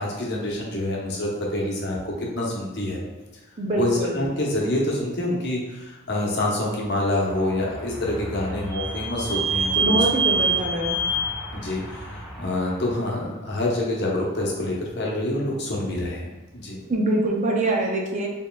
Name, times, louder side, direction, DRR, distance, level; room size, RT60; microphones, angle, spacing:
voice 1, 0.0-3.0 3.8-9.9 11.5-16.8, left 1 dB, 55° left, -3 dB, 0.9 m, -27 dB
voice 2, 3.6-4.3 9.8-11.0 16.9-18.3, right 1 dB, 35° right, 0 dB, 0.5 m, -24 dB
Vehicle / Squeak, 7.3-12.9, right 3 dB, 10° right, 1.5 m, -27 dB
4.4 x 3.6 x 2.3 m, 1.2 s
head